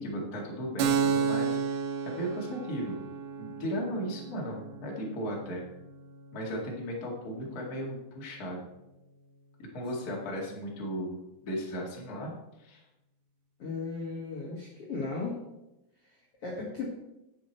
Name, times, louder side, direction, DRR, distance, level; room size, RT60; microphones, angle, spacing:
voice 1, 0.0-1.8 2.0-3.0 3.4-5.6 6.3-8.6 9.7-11.2 11.4-12.3 12.6-12.8, equal, 35° left, -2 dB, 1.7 m, -36 dB
Keyboard (musical), 0.8-8.1, right 6 dB, 75° right, 2.5 m, -33 dB
voice 2, 13.6-15.4 16.0-16.9, left 4 dB, 50° left, -4 dB, 1.9 m, -36 dB
10.5 x 8.1 x 4.4 m, 0.93 s
omnidirectional pair, 4.6 m